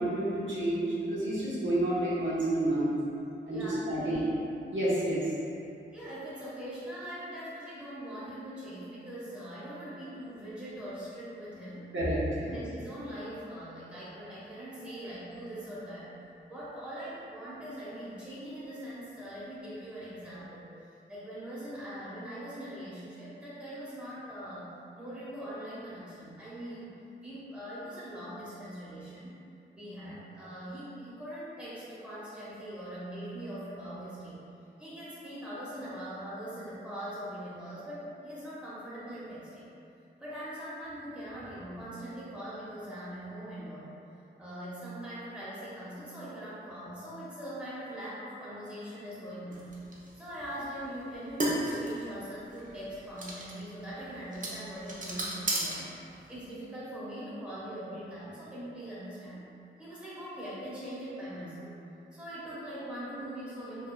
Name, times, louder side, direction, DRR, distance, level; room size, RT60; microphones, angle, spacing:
voice 1, 0.0-2.9 3.5-4.2 4.7-5.2 11.9-12.5, right 1 dB, 70° right, -9 dB, 1.0 m, -29 dB
voice 2, 3.5-4.3 5.9-11.9 12.4-16.1 16.5-20.6 21.1-26.9 27.2-29.4 29.7-34.4 34.8-39.7 40.2-43.9 44.4-49.7 50.2-55.9 56.3-59.5 59.8-61.7 62.1-63.9, right 1 dB, 5° right, -11 dB, 1.2 m, -41 dB
sound 1, 49.5-56.5, right 1 dB, 40° right, 0.7 m, -36 dB
4.8 x 2.7 x 2.3 m, 2.7 s
wide cardioid pair, 110°, 20 cm